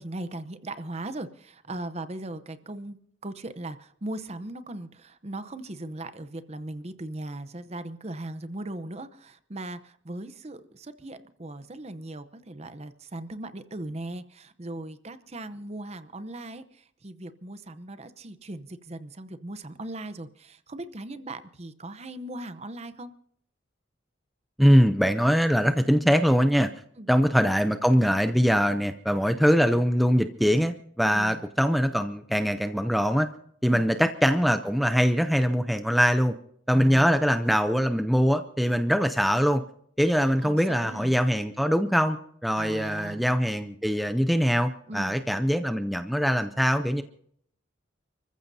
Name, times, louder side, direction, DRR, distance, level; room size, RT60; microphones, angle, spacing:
voice 1, 0.0-3.0 3.2-23.1 27.0-27.1 31.1-31.4 33.6-33.8 36.7-37.2 40.4-41.2 42.6-43.3 44.9-45.2, right 1 dB, 35° right, 12 dB, 0.8 m, -38 dB
voice 2, 24.6-26.7 27.1-33.3 33.6-36.3 36.7-39.6 40.0-42.2 42.4-47.0, equal, ahead, 8 dB, 0.5 m, -22 dB
30.0 x 14.5 x 2.7 m, 0.67 s
head